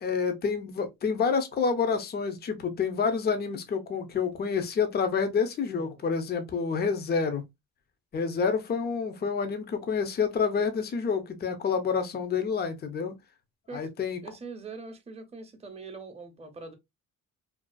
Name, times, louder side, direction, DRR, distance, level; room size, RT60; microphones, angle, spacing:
voice 1, 0.0-7.4 8.1-13.2 13.7-14.2, left 5 dB, 35° left, 0.5 m, -28 dB
voice 2, 14.2-16.7, right 4 dB, 20° right, 0.6 m, -43 dB
2.5 x 2.3 x 2.2 m
cardioid pair, 90°, 30 cm